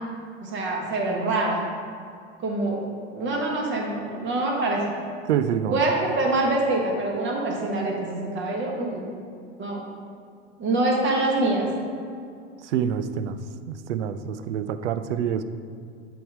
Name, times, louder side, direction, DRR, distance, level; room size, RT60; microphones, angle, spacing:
voice 1, 0.4-1.6 2.4-2.8 3.1-4.8 5.7-9.1 9.6-9.9 10.6-11.7, right 2 dB, 30° right, -1 dB, 1.6 m, -25 dB
voice 2, 5.3-5.8 12.6-13.4 13.7-15.4, right 8 dB, 75° right, 12 dB, 0.5 m, -26 dB
7.6 x 3.6 x 4.9 m, 2.3 s
hypercardioid pair, 90°, 35 cm